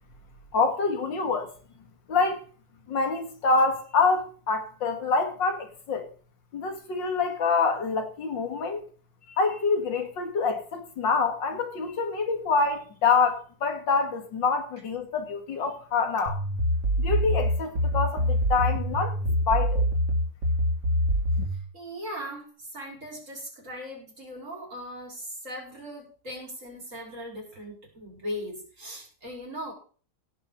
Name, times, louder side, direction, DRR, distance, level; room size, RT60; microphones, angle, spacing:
voice 1, 0.5-1.5 2.1-2.4 2.9-6.1 6.5-8.8 9.4-16.4 17.0-19.2 19.5-19.8 21.4-21.5, left 4 dB, 90° left, 2.7 m, -26 dB
sound 1, 16.3-21.6, equal, 80° right, 3.1 m, -25 dB
voice 2, 21.7-29.7, equal, 40° right, 5.7 m, -39 dB
16.5 x 5.7 x 6.6 m
omnidirectional pair, 1.9 m